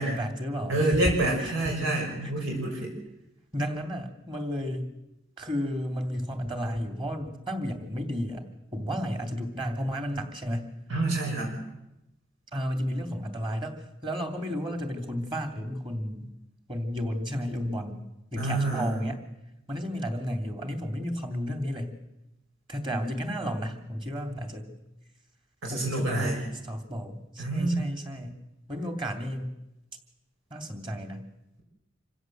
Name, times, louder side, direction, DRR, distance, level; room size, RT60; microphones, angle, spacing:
voice 1, 0.0-1.0 1.4-1.9 2.2-2.3 3.5-4.9 5.4-8.5 8.7-10.8 12.5-16.3 16.7-18.0 18.3-19.2 19.7-22.0 22.7-24.7 25.6-28.4 28.7-29.5 30.5-31.3, equal, 25° right, 6 dB, 3.1 m, -33 dB
voice 2, 0.7-2.9 10.9-11.6 18.4-19.0 25.6-26.4 27.4-27.8, right 2 dB, 85° right, 0 dB, 6.1 m, -27 dB
26.5 x 16.0 x 8.0 m, 0.90 s
head